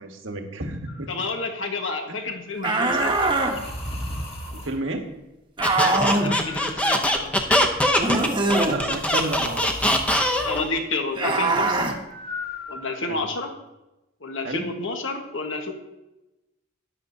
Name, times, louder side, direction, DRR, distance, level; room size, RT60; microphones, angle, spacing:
voice 1, 0.0-1.1 2.1-2.2 4.5-5.1 8.7-10.0 13.1-13.2 14.4-14.7, right 2 dB, 75° right, 4 dB, 1.3 m, -31 dB
sound 1, 0.9-1.2 2.9-4.8 6.2-7.3 8.8-10.6 12.1-13.3, left 1 dB, 30° left, 1.6 m, -37 dB
voice 2, 1.1-3.4 5.8-7.6 10.4-11.9 12.7-13.5 14.2-15.7, left 3 dB, 75° left, 4 dB, 1.4 m, -30 dB
sound 2, 2.6-3.6 5.6-6.3 8.0-8.8 11.1-11.9, right 2 dB, 25° right, 1.0 m, -22 dB
Squeak, 5.6-10.7, equal, 5° left, 0.7 m, -22 dB
13.5 x 10.5 x 2.7 m, 0.97 s
head